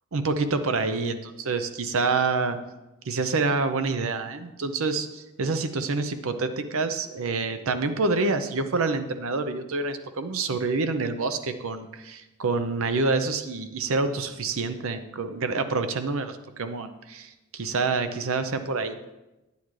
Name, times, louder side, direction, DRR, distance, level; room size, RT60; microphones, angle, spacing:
voice 1, 0.1-2.6 3.0-18.9, right 3 dB, 65° right, 9 dB, 0.7 m, -27 dB
9.5 x 8.8 x 3.2 m, 1.0 s
head